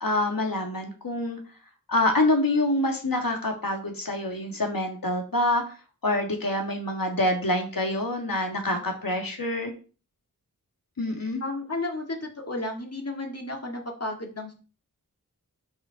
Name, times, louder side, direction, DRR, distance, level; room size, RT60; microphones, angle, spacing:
voice 1, 0.0-1.4 1.9-5.6 6.0-9.7 11.0-11.4, left 1 dB, 75° left, 2 dB, 1.9 m, -26 dB
voice 2, 11.4-14.5, left 2 dB, 45° left, 1 dB, 2.0 m, -33 dB
5.6 x 5.4 x 3.9 m, 0.36 s
wide cardioid pair, 55°, 35 cm